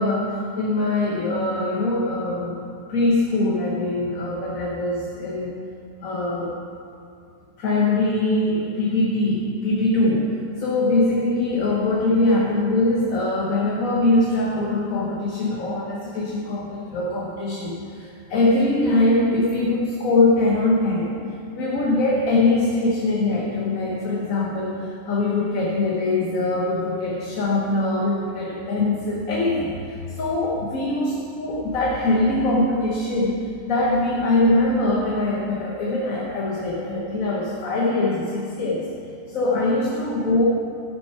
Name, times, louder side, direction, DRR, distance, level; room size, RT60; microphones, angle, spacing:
voice 1, 0.0-2.6 2.9-5.6 6.0-6.5 7.6-21.2 21.6-38.9 39.3-40.5, left 2 dB, 60° left, -3 dB, 1.5 m, -22 dB
14.5 x 6.1 x 4.5 m, 2.5 s
omnidirectional pair, 1.6 m